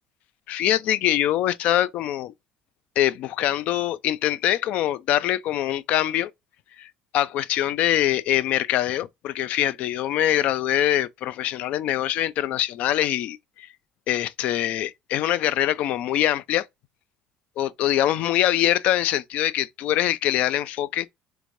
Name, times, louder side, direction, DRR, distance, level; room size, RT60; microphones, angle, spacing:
voice 1, 0.5-2.3 3.0-6.3 6.8-6.9 7.1-13.7 14.1-16.7 17.6-21.1, left 12 dB, 65° left, 0.4 m, -23 dB
3.4 x 3.1 x 2.6 m
supercardioid pair, 105°, 3 cm